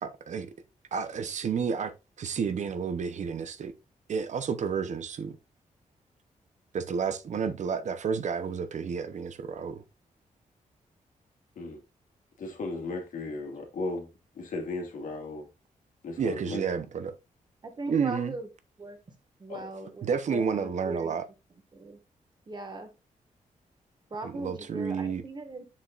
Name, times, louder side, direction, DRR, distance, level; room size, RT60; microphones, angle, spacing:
voice 1, 0.0-0.5 0.9-1.9 2.2-3.7 4.1-5.4 6.7-9.8 16.2-17.1 17.9-18.3 20.0-21.3 24.2-25.2, right 6 dB, 60° right, 0.8 m, -30 dB
voice 2, 12.4-14.1 14.3-15.5 16.0-16.6 19.5-19.7, left 2 dB, 75° left, 2.3 m, -36 dB
voice 3, 17.6-18.5 18.8-19.0 19.4-21.2 21.7-22.0 22.5-22.9 24.1-25.6, right 2 dB, 30° right, 1.6 m, -38 dB
7.4 x 6.8 x 2.4 m
wide cardioid pair, 140°, 14 cm